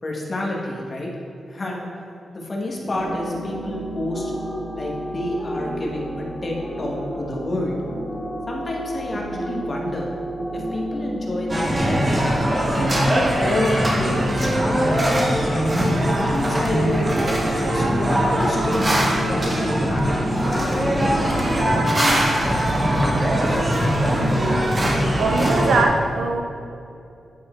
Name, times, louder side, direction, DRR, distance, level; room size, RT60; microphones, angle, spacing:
voice 1, 0.0-1.1 1.5-1.9 2.3-4.3 4.7-7.8 8.5-10.1 10.5-12.8 13.4-15.3 16.2-17.0 17.5-18.9 19.1-19.6 19.9-20.9, left 1 dB, 35° left, -2 dB, 1.3 m, -29 dB
sound 1, 2.9-22.2, equal, 10° left, 1.3 m, -31 dB
sound 2, 11.5-25.8, equal, 25° right, 1.1 m, -21 dB
voice 2, 24.2-24.7 25.2-26.4, right 3 dB, 90° right, 4 dB, 0.6 m, -22 dB
9.4 x 4.2 x 4.4 m, 2.6 s
wide cardioid pair, 130°, 0 cm